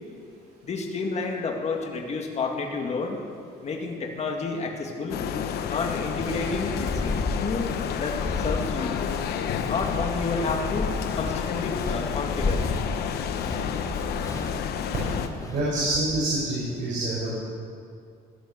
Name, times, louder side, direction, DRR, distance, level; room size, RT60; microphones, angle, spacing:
voice 1, 0.6-3.2 3.6-5.2 5.7-9.0 9.7-10.9 11.2-12.6, left 4 dB, 40° left, 2 dB, 2.2 m, -30 dB
sound 1, 5.1-15.3, left 8 dB, 75° left, 1.1 m, -30 dB
Walk footsteps, 6.2-15.8, left 3 dB, 20° left, 1.4 m, -33 dB
voice 2, 15.5-17.3, right 2 dB, 50° right, -5 dB, 4.9 m, -26 dB
17.0 x 11.5 x 6.7 m, 2.3 s
cardioid pair, 110°, 17 cm